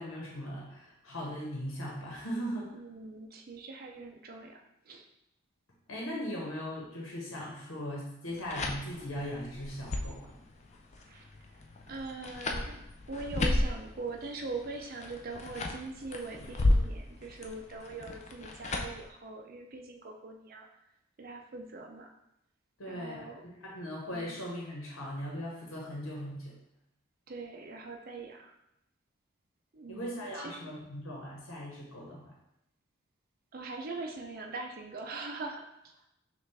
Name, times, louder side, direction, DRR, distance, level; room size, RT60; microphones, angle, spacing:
voice 1, 0.0-2.7 5.9-10.3 22.8-23.3 23.6-26.5 29.9-32.3, equal, 80° left, -3 dB, 1.1 m, -39 dB
voice 2, 2.7-5.0 11.0-11.3 11.9-12.8 13.1-20.7 21.2-22.1 22.9-23.4 24.0-24.4 27.3-28.5 29.7-30.7 33.5-36.0, right 3 dB, 45° right, 2 dB, 0.5 m, -42 dB
sound 1, 8.3-19.1, left 2 dB, 35° left, 0.4 m, -34 dB
5.5 x 2.5 x 3.4 m, 0.82 s
head